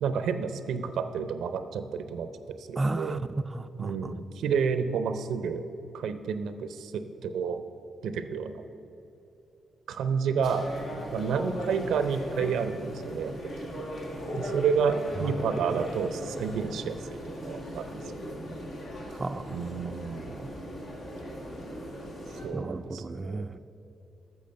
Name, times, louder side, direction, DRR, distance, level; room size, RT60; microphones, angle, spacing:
voice 1, 0.0-2.3 2.6-3.2 3.8-5.6 5.9-7.6 8.0-8.6 9.9-10.7 11.1-13.3 14.3-18.3 19.5-20.3 22.4-23.5, right 6 dB, 85° right, 10 dB, 0.5 m, -30 dB
voice 2, 2.8-3.2 3.5-4.1 15.7-15.8 19.2-19.6 19.8-19.9 20.4-20.5 22.5-23.6, right 2 dB, 30° right, 9 dB, 0.3 m, -33 dB
sound 1, 10.4-22.5, equal, 75° left, 2.1 m, -38 dB
8.6 x 6.4 x 6.6 m, 2.9 s
cardioid pair, 70°, 0 cm